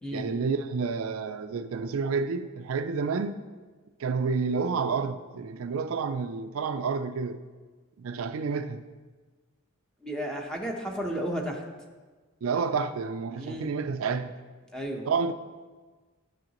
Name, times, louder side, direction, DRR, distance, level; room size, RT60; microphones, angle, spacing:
voice 1, 0.1-3.4 4.0-7.4 8.0-8.8 12.4-14.4 15.1-15.3, right 5 dB, 80° right, 0.4 m, -29 dB
voice 2, 10.0-11.6 13.4-13.7 14.7-15.1, equal, 5° left, 0.9 m, -33 dB
11.5 x 6.5 x 3.0 m
head